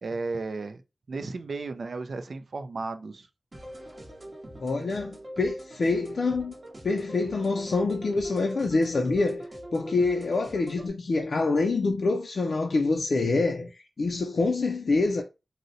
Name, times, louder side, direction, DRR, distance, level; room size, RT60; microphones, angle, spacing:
voice 1, 0.0-0.8 1.1-3.3, right 3 dB, 75° right, 0.4 m, -34 dB
sound 1, 3.5-10.9, equal, 40° right, 0.8 m, -43 dB
voice 2, 4.6-6.5 6.8-9.5 9.7-15.2, left 3 dB, 75° left, 0.3 m, -26 dB
3.8 x 2.0 x 2.6 m
wide cardioid pair, 110°, 0 cm